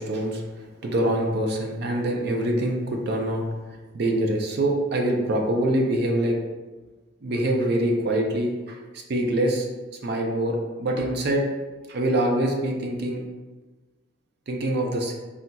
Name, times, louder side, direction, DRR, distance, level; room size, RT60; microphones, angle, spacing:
voice 1, 0.0-3.4 3.9-6.4 7.2-8.8 9.1-9.7 10.0-11.4 11.9-13.2 14.5-15.1, right 1 dB, 60° right, 1 dB, 0.4 m, -24 dB
3.9 x 2.4 x 2.2 m, 1.3 s
head